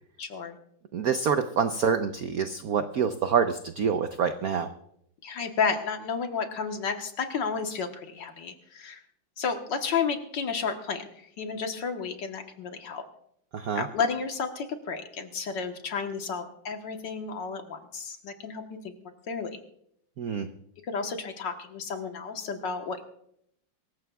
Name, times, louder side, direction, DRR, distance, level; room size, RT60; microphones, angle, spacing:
voice 1, 0.2-0.6 5.2-9.0 9.4-13.0 13.8-18.9 19.3-19.6 20.8-23.0, left 5 dB, 60° left, 5 dB, 1.7 m, -32 dB
voice 2, 0.9-4.7 13.5-13.9 20.2-20.5, right 6 dB, 75° right, 8 dB, 0.8 m, -26 dB
24.5 x 14.5 x 2.3 m, 0.72 s
omnidirectional pair, 2.4 m